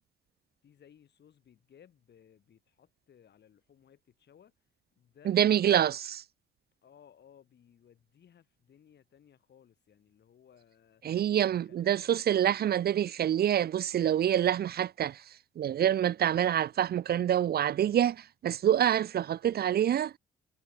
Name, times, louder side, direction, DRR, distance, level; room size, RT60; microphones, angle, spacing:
voice 1, 0.6-4.5 5.0-5.8 6.8-11.0 11.5-12.6, left 9 dB, 60° left, 5.4 m, -60 dB
voice 2, 5.3-6.2 11.0-20.1, right 10 dB, 50° right, 0.6 m, -26 dB
cardioid pair, 90°, 20 cm